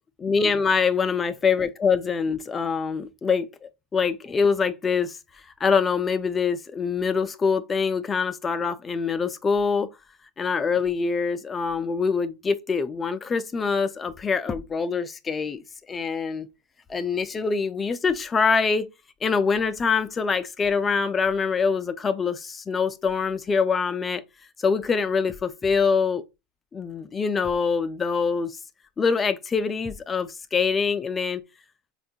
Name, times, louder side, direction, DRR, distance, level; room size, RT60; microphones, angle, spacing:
voice 1, 0.2-5.2 5.6-9.9 10.4-15.6 15.9-16.5 16.9-18.9 19.2-24.2 24.6-26.2 26.7-28.6 29.0-31.4, left 5 dB, 20° left, 0.3 m, -24 dB
3.5 x 2.3 x 2.6 m
supercardioid pair, 110°, 0 cm